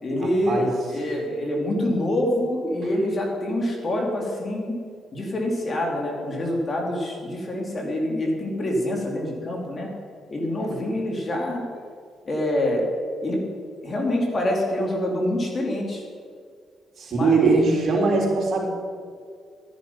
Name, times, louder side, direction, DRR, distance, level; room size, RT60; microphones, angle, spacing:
voice 1, 0.0-4.8 5.1-9.9 10.3-11.6 12.2-12.8 13.2-13.4 13.8-16.0 17.1-17.4, left 1 dB, 40° left, 0 dB, 3.1 m, -26 dB
voice 2, 17.0-18.7, right 3 dB, 55° right, -1 dB, 3.5 m, -20 dB
13.5 x 10.5 x 5.6 m, 2.1 s
cardioid pair, 90°, 0 cm